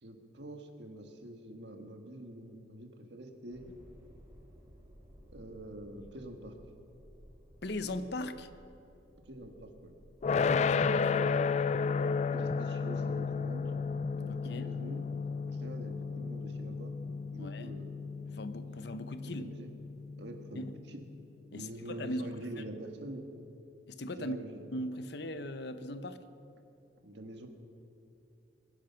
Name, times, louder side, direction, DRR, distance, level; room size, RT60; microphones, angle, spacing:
voice 1, 0.0-3.6 5.3-6.5 9.2-9.9 10.6-10.9 11.1-11.5 12.3-13.7 14.2-15.0 15.4-16.9 17.3-18.0 19.4-19.7 20.2-21.0 21.5-23.2 24.2-24.6 27.0-27.5, right 1 dB, 65° right, 5 dB, 1.6 m, -46 dB
sound 1, 3.5-18.6, equal, 15° right, 2.4 m, -59 dB
voice 2, 7.6-8.5 10.3-11.1 14.3-14.6 17.4-17.8 18.3-19.5 20.6-20.7 21.5-22.4 23.9-24.4 24.7-26.2, left 1 dB, 65° left, 11 dB, 0.8 m, -39 dB
sound 2, 10.2-21.2, left 5 dB, 40° left, 0.3 m, -33 dB
23.0 x 10.0 x 5.8 m, 2.9 s
head